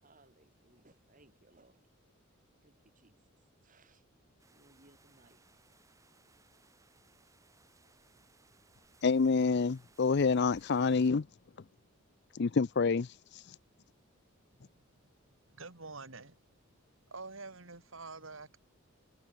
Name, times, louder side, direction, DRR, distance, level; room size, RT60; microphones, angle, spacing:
voice 1, 0.0-2.0 2.6-3.2 3.6-4.0 4.5-5.4, right 2 dB, 40° right, 5.3 m, -64 dB
sound 1, 4.4-11.1, right 3 dB, 15° right, 5.6 m, -65 dB
voice 2, 9.0-11.3 12.4-13.1, left 4 dB, 50° left, 0.5 m, -27 dB
voice 3, 15.5-16.4 17.1-18.6, right 3 dB, 70° right, 2.8 m, -46 dB
head